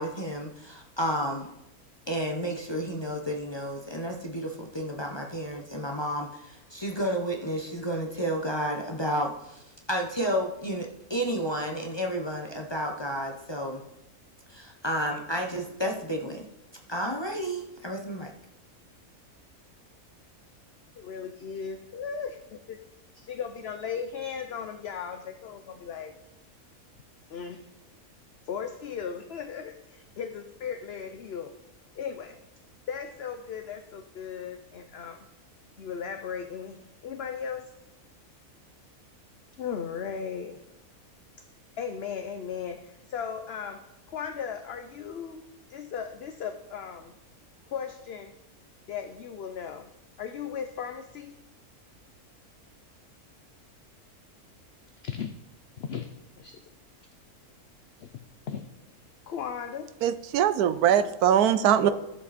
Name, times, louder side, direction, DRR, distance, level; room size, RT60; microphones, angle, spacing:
voice 1, 0.0-1.5 2.1-13.8 14.5-16.4 16.9-18.3 61.8-61.9, equal, 20° left, 1 dB, 1.0 m, -31 dB
voice 2, 21.0-22.8 23.1-26.1 27.3-27.6 28.4-31.5 31.9-32.4 32.9-35.3 35.8-37.7 39.6-40.6 41.8-43.8 44.1-45.4 45.7-47.1 47.7-48.3 48.9-49.9 50.2-51.4 55.0-55.3 55.8-56.1 56.4-56.6 58.0-58.1 58.5-58.6 59.3-59.9, left 7 dB, 55° left, 6 dB, 0.8 m, -36 dB
voice 3, 60.0-61.9, right 9 dB, 85° right, 13 dB, 1.2 m, -22 dB
13.0 x 7.4 x 4.3 m, 0.90 s
omnidirectional pair, 1.6 m